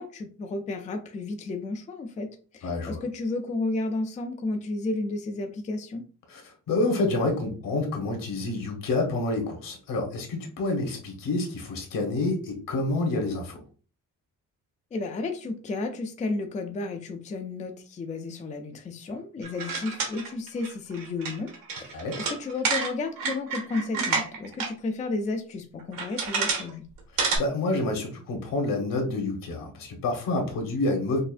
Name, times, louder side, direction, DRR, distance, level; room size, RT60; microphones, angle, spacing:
voice 1, 0.0-6.1 14.9-21.5 21.8-26.8, left 3 dB, 20° left, 5 dB, 0.4 m, -32 dB
voice 2, 2.6-3.0 6.3-13.6 21.9-22.2 27.1-31.2, left 2 dB, 80° left, 2 dB, 1.3 m, -28 dB
sound 1, 19.4-24.7 25.1-25.2 25.8-26.7 27.0-27.4, right 5 dB, 90° right, 1.3 m, -29 dB
5.5 x 2.5 x 2.5 m, 0.38 s
wide cardioid pair, 175°, 33 cm